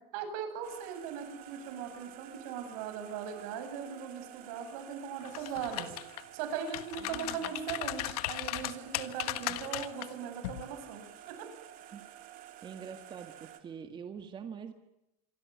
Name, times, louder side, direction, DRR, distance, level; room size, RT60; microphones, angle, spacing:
voice 1, 0.1-6.0 6.3-11.5, right 7 dB, 75° right, 7 dB, 7.6 m, -39 dB
sound 1, 0.6-13.6, right 11 dB, 50° right, 3.4 m, -51 dB
sound 2, 5.2-6.2 6.6-10.1 10.4-10.6, left 17 dB, 85° left, 1.6 m, -36 dB
voice 2, 7.0-7.6 11.9-12.0 12.6-14.7, right 7 dB, 25° right, 7 dB, 1.8 m, -45 dB
26.5 x 23.5 x 9.4 m, 0.89 s
cardioid pair, 150°, 19 cm